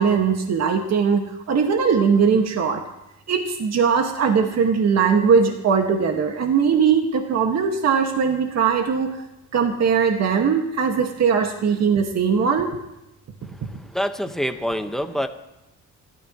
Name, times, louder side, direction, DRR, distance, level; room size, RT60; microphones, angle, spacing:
voice 1, 0.0-2.8 3.3-9.2 9.5-12.7, right 6 dB, 60° right, 3 dB, 2.1 m, -20 dB
voice 2, 13.9-15.3, equal, ahead, 6 dB, 1.4 m, -25 dB
28.0 x 14.0 x 3.2 m, 0.92 s
cardioid pair, 90°, 30 cm